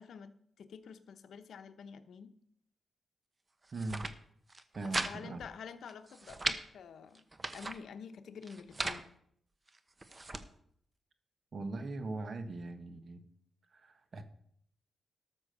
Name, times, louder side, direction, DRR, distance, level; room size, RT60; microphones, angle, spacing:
voice 1, 0.0-2.3 4.8-7.3 7.5-9.0, left 6 dB, 80° left, 9 dB, 0.9 m, -49 dB
sound 1, 3.6-4.1 4.5-5.1 5.4-5.5 5.9-6.6 7.1-7.8 8.4-9.0 9.7-10.4, right 2 dB, 25° right, 0.9 m, -37 dB
voice 2, 3.7-4.0 4.7-5.4 11.5-13.2 13.7-14.2, right 2 dB, 50° right, 9 dB, 1.2 m, -40 dB
13.0 x 6.3 x 6.6 m, 0.69 s
cardioid pair, 100°, 0 cm